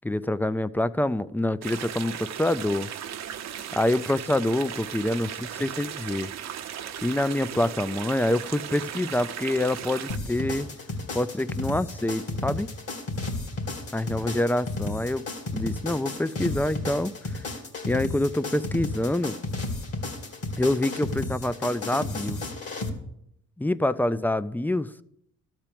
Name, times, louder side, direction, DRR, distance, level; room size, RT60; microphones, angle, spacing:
voice 1, 0.0-2.9 3.7-6.3 7.0-10.7 11.1-12.7 13.9-15.2 15.5-17.1 17.9-19.4 20.6-22.4 23.6-24.9, left 1 dB, 5° left, 16 dB, 0.3 m, -26 dB
sound 1, 1.6-10.2, right 9 dB, 60° right, 0.8 m, -37 dB
sound 2, 10.1-22.9, left 2 dB, 50° left, 2.5 m, -33 dB
13.5 x 4.5 x 8.6 m, 0.77 s
cardioid pair, 90°, 30 cm